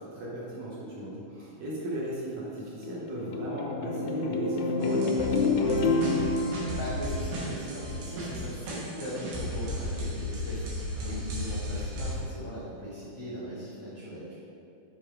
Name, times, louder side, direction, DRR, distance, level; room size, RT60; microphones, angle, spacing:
voice 1, 0.0-5.7 10.9-11.1, right 1 dB, 65° right, -6 dB, 2.0 m, -37 dB
sound 1, 2.4-8.0, left 3 dB, 85° left, 1.6 m, -29 dB
sound 2, 4.8-12.1, left 1 dB, 80° right, 3.2 m, -35 dB
voice 2, 6.8-10.7 11.0-14.3, equal, 65° left, -9 dB, 1.0 m, -39 dB
6.8 x 5.4 x 4.5 m, 2.8 s
omnidirectional pair, 4.2 m